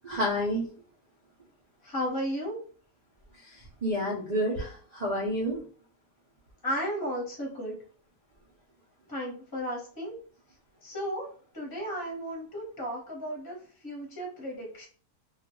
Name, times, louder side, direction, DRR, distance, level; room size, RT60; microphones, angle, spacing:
voice 1, 0.0-0.7 3.4-5.6, equal, 70° right, -4 dB, 0.4 m, -29 dB
voice 2, 1.8-2.6 6.6-7.8 9.1-10.1 10.8-11.3 11.5-14.9, equal, 15° left, -2 dB, 0.9 m, -34 dB
2.4 x 2.3 x 2.9 m, 0.42 s
omnidirectional pair, 1.6 m